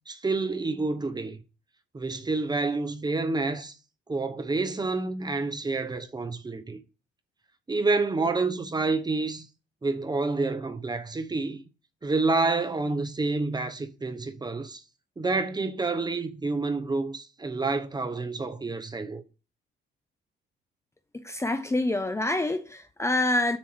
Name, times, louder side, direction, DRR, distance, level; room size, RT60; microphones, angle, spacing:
voice 1, 0.1-1.4 1.9-3.7 4.1-6.8 7.7-9.5 9.8-11.6 12.0-14.8 15.2-19.2, right 3 dB, 20° right, 0.8 m, -28 dB
voice 2, 21.1-23.6, left 2 dB, 15° left, 0.6 m, -26 dB
7.3 x 2.9 x 4.8 m
cardioid pair, 90°, 20 cm